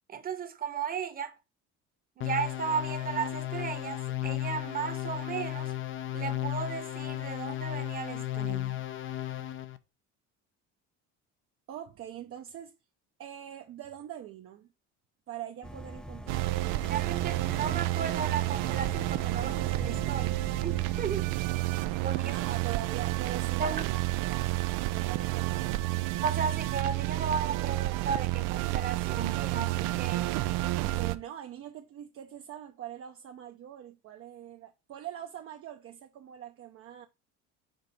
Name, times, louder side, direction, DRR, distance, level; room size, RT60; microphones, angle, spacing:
voice 1, 0.1-1.3 2.2-5.7 6.1-8.8 16.9-21.3 22.0-22.3 23.6-23.9 26.2-30.4, right 6 dB, 30° right, 1.0 m, -35 dB
sound 1, 2.2-9.8, left 13 dB, 40° left, 0.6 m, -34 dB
voice 2, 11.7-12.7 13.2-14.7 15.3-17.0 21.8-24.4 24.9-25.8 30.9-37.1, right 11 dB, 45° right, 0.7 m, -43 dB
sound 2, 15.6-21.0, equal, 5° left, 0.3 m, -43 dB
sound 3, 16.3-31.2, right 18 dB, 85° right, 0.6 m, -30 dB
5.3 x 4.0 x 6.0 m
cardioid pair, 130°, 31 cm